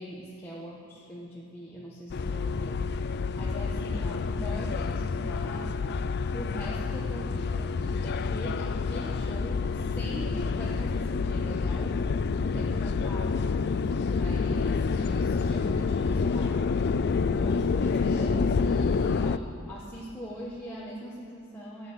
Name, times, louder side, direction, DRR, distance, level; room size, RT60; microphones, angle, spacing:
voice 1, 0.0-5.8 6.3-21.9, equal, 10° left, -6 dB, 1.5 m, -41 dB
sound 1, 2.1-19.4, left 4 dB, 50° left, 0.4 m, -28 dB
14.0 x 9.2 x 9.8 m, 2.5 s
head